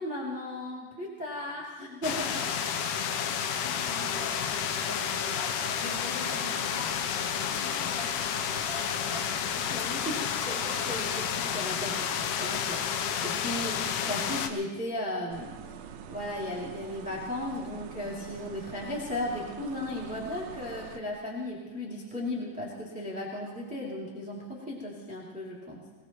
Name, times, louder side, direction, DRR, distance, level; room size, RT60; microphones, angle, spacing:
voice 1, 0.0-2.8 9.7-10.2 10.4-15.5 16.1-25.8, left 1 dB, 5° right, -5 dB, 2.2 m, -36 dB
sound 1, 2.0-14.5, left 8 dB, 75° left, 2.2 m, -31 dB
voice 2, 2.9-9.3, left 2 dB, 40° left, -4 dB, 4.1 m, -44 dB
sound 2, 15.3-21.0, right 8 dB, 85° right, 2.6 m, -45 dB
24.0 x 18.0 x 3.1 m, 1.3 s
omnidirectional pair, 4.1 m